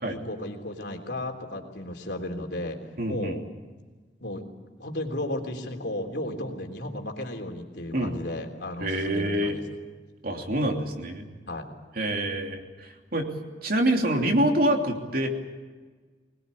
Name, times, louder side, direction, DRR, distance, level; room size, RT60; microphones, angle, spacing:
voice 1, 0.0-2.8 3.1-3.4 4.2-4.4 4.8-9.6 11.5-11.6, left 1 dB, 65° left, 3 dB, 3.5 m, -34 dB
voice 2, 3.0-3.4 7.9-8.1 8.8-9.6 10.2-11.3 11.9-13.3 13.6-15.3, right 1 dB, 55° right, 2 dB, 3.0 m, -26 dB
23.5 x 20.5 x 8.5 m, 1.4 s
head